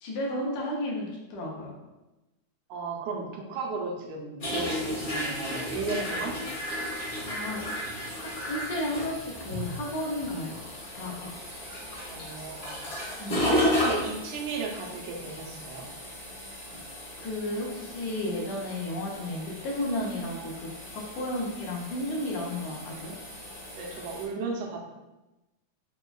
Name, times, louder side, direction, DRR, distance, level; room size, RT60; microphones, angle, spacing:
voice 1, 0.0-1.8 7.2-7.6 8.1-10.6 10.9-11.3 13.2-13.4 17.2-23.1, left 1 dB, 80° left, -2 dB, 2.1 m, -33 dB
voice 2, 2.7-6.4 12.1-12.8 13.4-15.9 23.7-24.8, right 4 dB, 85° right, 0 dB, 1.9 m, -35 dB
sound 1, 4.4-24.3, left 1 dB, 55° left, 0.9 m, -34 dB
5.2 x 2.2 x 2.3 m, 1.0 s
omnidirectional pair, 3.3 m